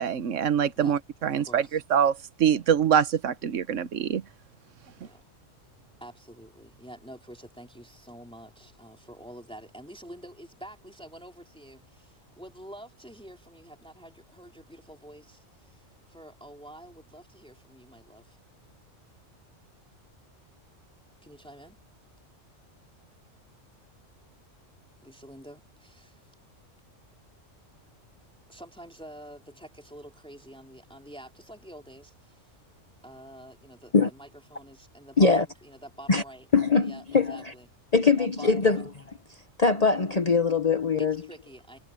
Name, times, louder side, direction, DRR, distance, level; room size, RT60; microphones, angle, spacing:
voice 1, 0.0-4.2, right 8 dB, 80° right, 1.3 m, -24 dB
voice 2, 1.4-1.8 5.0-5.2 6.0-18.4 21.2-21.8 25.0-26.3 28.5-32.5 33.0-36.5 36.8-37.7 38.1-38.8 41.0-41.8, right 1 dB, 5° left, 4.0 m, -47 dB
voice 3, 36.5-37.4 37.9-38.8 39.6-41.2, left 4 dB, 35° left, 1.1 m, -22 dB
omnidirectional pair, 1.3 m